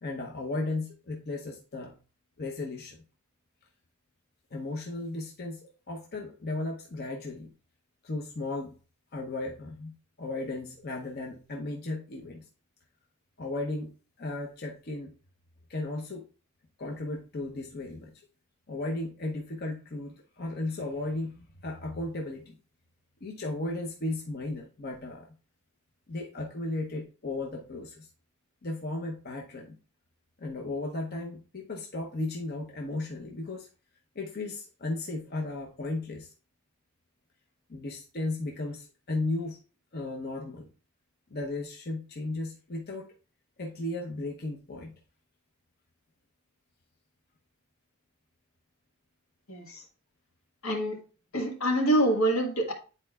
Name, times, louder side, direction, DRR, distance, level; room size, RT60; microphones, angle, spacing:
voice 1, 0.0-2.0 2.4-3.0 4.5-7.5 8.0-8.8 9.1-12.4 13.4-13.9 14.2-15.1 15.7-16.2 16.8-18.1 18.7-22.6 23.2-25.3 26.1-28.1 28.6-29.8 30.4-33.7 34.1-36.3 37.7-39.6 39.9-40.7 41.3-43.1 43.6-44.9, left 2 dB, 50° left, 1 dB, 0.8 m, -35 dB
voice 2, 49.5-49.8 50.6-51.0 51.3-52.7, right 1 dB, 80° left, 1 dB, 1.6 m, -26 dB
10.0 x 4.3 x 2.3 m, 0.35 s
head